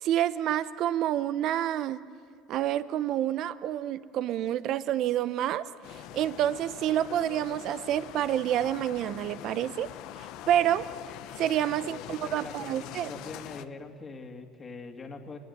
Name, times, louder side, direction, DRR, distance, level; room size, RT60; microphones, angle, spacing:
voice 1, 0.0-2.0 2.5-9.9 10.2-10.9 11.4-13.1, right 11 dB, 60° right, 14 dB, 0.8 m, -28 dB
sound 1, 5.8-13.7, left 13 dB, 70° left, 1.0 m, -43 dB
voice 2, 11.7-15.4, left 3 dB, 30° left, 3 dB, 2.5 m, -43 dB
27.5 x 21.5 x 9.6 m, 2.4 s
supercardioid pair, 95°, 0 cm